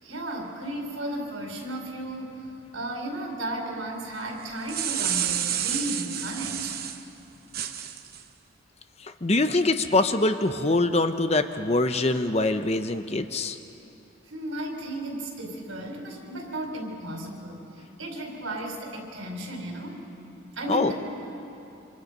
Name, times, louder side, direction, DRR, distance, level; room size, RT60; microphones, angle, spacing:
voice 1, 0.0-6.7 14.3-20.0 20.5-20.9, right 1 dB, 85° right, 0 dB, 5.1 m, -34 dB
sound 1, 4.4-7.0 7.5-8.2, right 10 dB, 45° right, 0.9 m, -29 dB
voice 2, 9.2-13.6 20.7-20.9, left 2 dB, 30° left, 8 dB, 0.8 m, -24 dB
28.0 x 27.0 x 5.4 m, 2.8 s
head